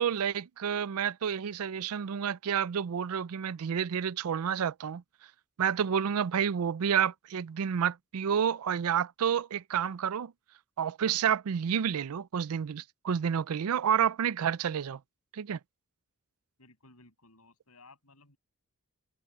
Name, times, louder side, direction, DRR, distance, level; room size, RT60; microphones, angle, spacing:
voice 1, 0.0-5.0 5.6-10.3 10.8-15.0 15.3-15.6, right 8 dB, 75° right, 0.4 m, -29 dB
voice 2, 16.6-18.4, left 3 dB, 80° left, 7.7 m, -58 dB
head